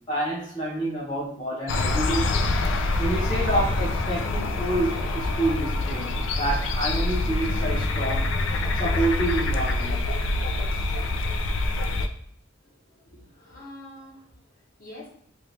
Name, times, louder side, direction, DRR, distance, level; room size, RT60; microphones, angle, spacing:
voice 1, 0.1-2.5 3.0-8.3 8.7-10.0, right 1 dB, 20° left, -8 dB, 0.9 m, -28 dB
sound 1, 1.7-12.1, left 2 dB, 65° left, 0.4 m, -25 dB
voice 2, 12.6-15.1, left 1 dB, 45° left, -6 dB, 1.1 m, -46 dB
3.0 x 2.6 x 3.3 m, 0.66 s
head